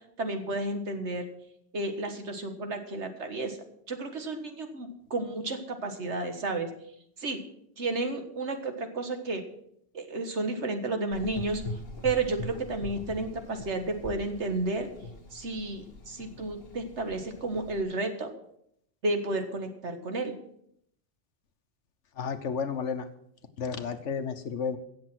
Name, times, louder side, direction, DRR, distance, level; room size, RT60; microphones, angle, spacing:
voice 1, 0.2-1.2 1.7-3.6 3.9-6.7 7.2-7.4 7.8-9.4 9.9-11.6 12.0-14.9 15.3-18.3 19.0-20.3, right 2 dB, 75° right, 6 dB, 1.9 m, -32 dB
Gurgling / Engine, 11.1-17.8, left 2 dB, 55° left, 1.5 m, -43 dB
voice 2, 22.2-23.1 23.6-24.8, left 6 dB, 85° left, 10 dB, 1.4 m, -32 dB
16.0 x 7.4 x 6.2 m, 0.71 s
omnidirectional pair, 1.2 m